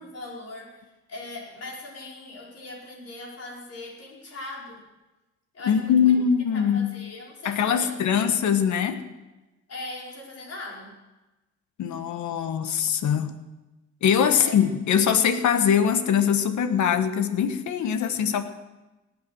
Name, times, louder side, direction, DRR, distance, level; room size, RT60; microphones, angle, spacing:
voice 1, 0.0-4.9 5.5-6.2 6.5-8.0 9.7-10.9 14.3-14.6, left 2 dB, 55° left, -2 dB, 4.9 m, -40 dB
voice 2, 5.6-7.0 7.4-9.0 11.8-13.3 14.0-18.4, left 8 dB, 70° left, 10 dB, 1.4 m, -22 dB
18.5 x 9.6 x 6.4 m, 1.1 s
cardioid pair, 90°, 30 cm